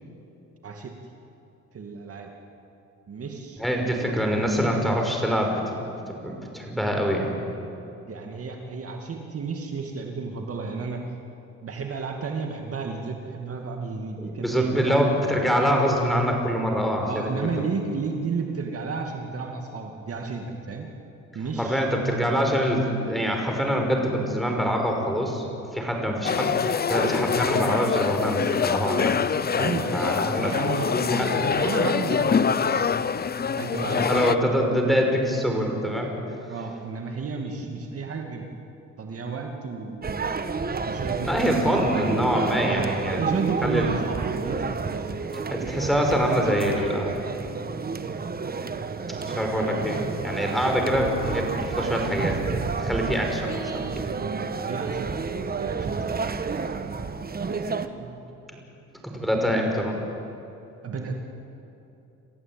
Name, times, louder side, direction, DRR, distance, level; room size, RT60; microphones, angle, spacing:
voice 1, 0.6-1.0 1.7-2.3 3.1-4.2 8.1-11.0 11.6-15.3 17.0-20.9 21.3-21.9 29.6-32.9 33.6-34.1 36.5-38.5 39.0-40.4 40.9-41.9 42.6-45.0 54.1-56.0 56.3-56.4 56.8-58.2 59.3-59.5 60.8-61.1, right 4 dB, 50° right, 2 dB, 2.4 m, -32 dB
voice 2, 3.6-7.3 14.2-17.5 21.6-25.5 25.7-29.2 29.5-30.5 31.1-31.3 34.0-36.1 41.3-43.2 43.6-43.9 45.3-47.2 49.3-52.4 52.8-54.1 59.0-60.0, equal, ahead, 1 dB, 5.5 m, -25 dB
sound 1, 26.2-34.4, left 6 dB, 30° left, 0.8 m, -25 dB
sound 2, 40.0-57.9, right 5 dB, 30° right, 1.3 m, -30 dB
28.0 x 14.5 x 9.1 m, 2.9 s
cardioid pair, 90°, 30 cm